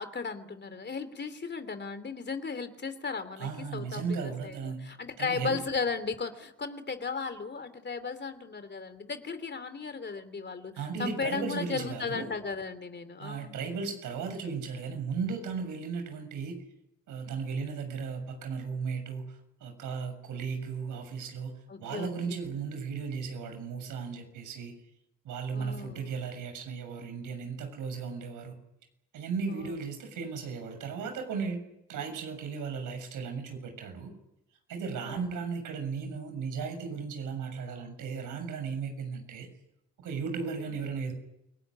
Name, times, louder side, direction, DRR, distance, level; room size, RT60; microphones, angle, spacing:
voice 1, 0.0-10.7 11.0-13.6 21.7-22.5 25.5-26.1 29.5-29.8 35.0-35.4, left 5 dB, 35° left, 11 dB, 3.0 m, -36 dB
voice 2, 3.4-5.6 10.8-12.3 13.2-16.6 17.1-24.7 25.2-28.6 29.1-31.6 31.9-34.1 34.7-39.5 40.0-41.1, right 5 dB, 80° right, 6 dB, 7.1 m, -36 dB
28.5 x 18.5 x 10.0 m, 0.87 s
cardioid pair, 80°, 31 cm